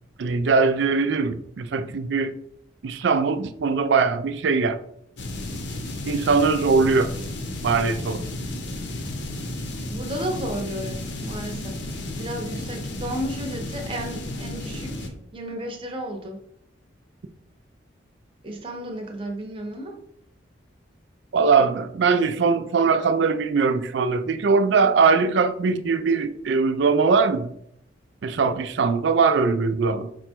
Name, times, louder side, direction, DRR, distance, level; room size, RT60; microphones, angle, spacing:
voice 1, 0.2-2.3 2.8-4.8 6.1-7.1 7.6-8.2 21.3-27.5 28.2-30.1, right 4 dB, 65° right, 0.4 m, -21 dB
sound 1, 5.2-15.1, left 1 dB, 65° left, 0.7 m, -33 dB
voice 2, 9.9-11.8 12.1-16.4 18.4-20.0, right 1 dB, 25° right, 0.7 m, -33 dB
4.9 x 2.2 x 4.3 m
head